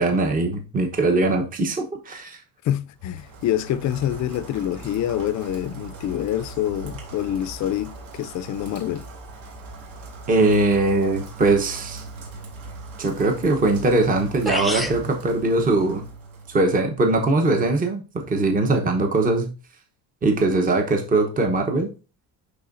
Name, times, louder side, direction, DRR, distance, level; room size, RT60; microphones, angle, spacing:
voice 1, 0.0-2.4 10.3-12.0 13.0-16.0 16.5-19.5 20.2-21.9, right 2 dB, 20° right, 1.0 m, -21 dB
voice 2, 2.6-9.1, left 11 dB, 50° left, 0.6 m, -26 dB
Rain, 2.9-16.8, right 3 dB, 60° right, 2.7 m, -40 dB
sound 1, 14.4-15.0, left 1 dB, ahead, 0.5 m, -26 dB
11.0 x 3.8 x 2.5 m
cardioid pair, 155°, 38 cm